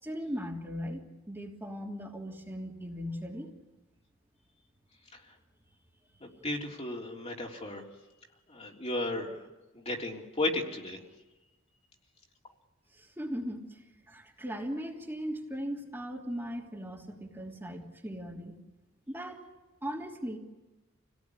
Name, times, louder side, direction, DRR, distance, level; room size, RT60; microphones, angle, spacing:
voice 1, 0.0-3.5 12.9-13.8 14.1-18.6 19.1-19.4 19.8-20.4, equal, 10° right, -1 dB, 3.1 m, -38 dB
voice 2, 6.2-7.8 8.5-9.3 9.7-11.0, left 2 dB, 30° left, -1 dB, 3.7 m, -34 dB
29.0 x 18.5 x 10.0 m, 1.1 s
head